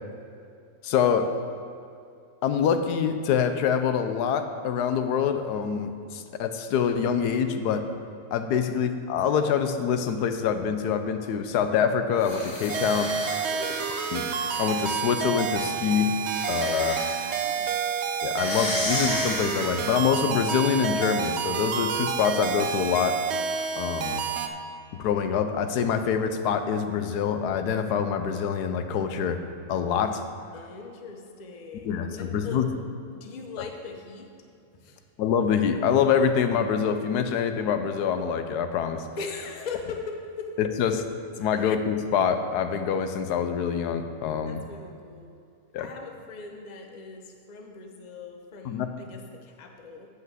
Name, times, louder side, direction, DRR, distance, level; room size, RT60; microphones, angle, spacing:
voice 1, 0.8-1.3 2.4-7.8 8.3-13.1 14.1-14.3 14.6-16.2 16.5-17.0 18.2-23.2 23.7-24.3 24.9-29.4 29.7-30.2 31.8-32.7 35.2-39.0 40.6-41.0 41.4-44.6 45.7-45.9 48.6-48.9, left 7 dB, 90° left, 8 dB, 1.2 m, -25 dB
sound 1, 12.1-15.1 16.2-17.4 18.3-20.0, left 1 dB, 65° left, 2.8 m, -34 dB
sound 2, 12.7-24.5, right 6 dB, 60° right, 0.7 m, -29 dB
voice 2, 13.4-13.8 17.2-17.8 30.5-32.6 33.1-34.3 34.7-35.0 39.2-40.6 44.4-45.3 45.8-50.1, left 4 dB, 35° left, 3 dB, 0.7 m, -40 dB
8.0 x 5.8 x 7.6 m, 2.5 s
omnidirectional pair, 1.7 m